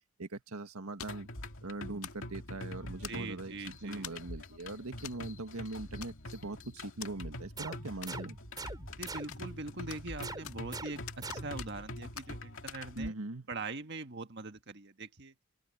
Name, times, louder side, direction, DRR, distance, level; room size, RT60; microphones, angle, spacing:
voice 1, 0.2-1.3 1.6-3.5 3.8-8.4 13.0-13.5, right 2 dB, 85° right, 1.8 m, -41 dB
sound 1, 1.0-1.3 2.0-2.3 3.0-3.5 4.0-4.3 5.0-5.2 5.5-5.6 6.0-6.5 7.0-7.1 8.0-8.5 9.0-9.6 9.9-10.7 11.1-11.9 12.2-12.3 12.7-12.8, left 9 dB, 80° left, 1.9 m, -46 dB
sound 2, 1.1-13.1, left 1 dB, 60° left, 2.5 m, -45 dB
voice 2, 3.1-4.1 9.0-13.1 13.5-15.3, right 3 dB, 50° right, 1.6 m, -42 dB
sound 3, 7.6-9.6 10.2-11.8, right 3 dB, 20° right, 4.0 m, -44 dB
head